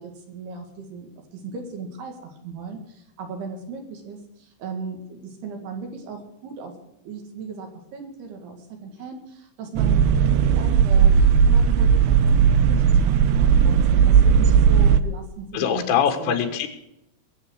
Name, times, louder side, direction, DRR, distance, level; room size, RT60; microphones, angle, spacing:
voice 1, 0.0-6.8 7.0-16.4, right 5 dB, 60° right, 4 dB, 3.7 m, -37 dB
sound 1, 9.8-15.0, right 7 dB, 85° right, 2.4 m, -16 dB
voice 2, 15.5-16.7, left 8 dB, 85° left, 6 dB, 4.2 m, -22 dB
21.0 x 8.1 x 6.3 m, 0.82 s
omnidirectional pair, 5.8 m